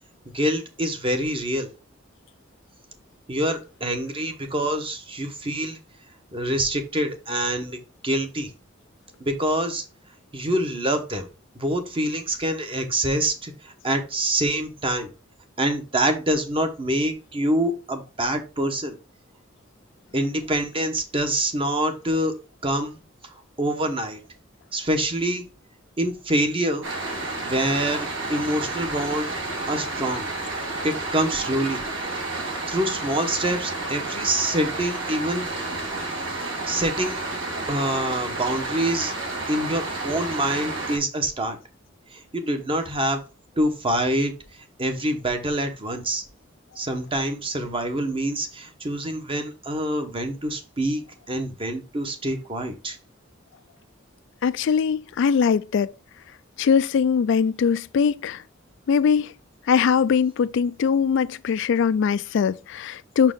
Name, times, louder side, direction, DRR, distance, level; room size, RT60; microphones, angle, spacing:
voice 1, 0.3-1.7 3.3-5.8 6.3-8.5 9.2-9.8 10.3-11.3 11.6-15.1 15.6-19.0 20.1-22.3 22.6-23.0 23.6-24.2 24.7-25.5 26.0-26.8 27.4-29.3 29.7-30.3 30.8-31.8 32.7-35.5 36.7-37.2 37.7-39.1 39.5-41.6 42.1-43.2 43.6-44.3 44.8-46.2 46.8-53.0, right 1 dB, 30° right, 1.0 m, -26 dB
sound 1, 26.8-41.0, right 2 dB, 70° right, 2.0 m, -30 dB
voice 2, 54.4-55.9 56.6-58.4 58.9-59.3 59.7-63.3, left 6 dB, 65° left, 0.3 m, -21 dB
6.0 x 4.4 x 3.7 m
head